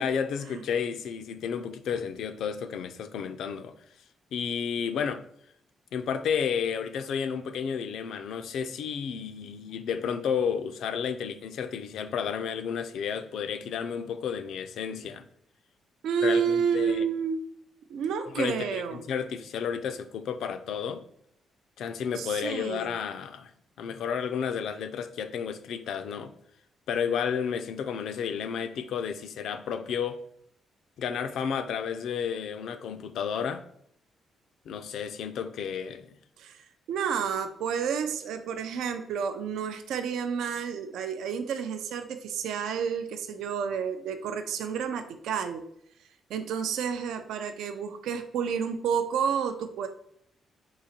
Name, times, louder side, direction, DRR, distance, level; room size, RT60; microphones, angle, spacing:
voice 1, 0.0-3.7 4.3-5.2 5.9-15.2 16.2-17.1 18.2-21.0 21.8-23.5 23.8-26.3 26.9-30.2 31.0-33.6 34.7-36.1, left 7 dB, 75° left, 0.4 m, -32 dB
voice 2, 16.0-17.4 17.9-19.0 22.2-23.0 36.4-45.6 46.3-49.9, right 7 dB, 90° right, 0.4 m, -30 dB
3.8 x 2.9 x 4.2 m
cardioid pair, 135°, 0 cm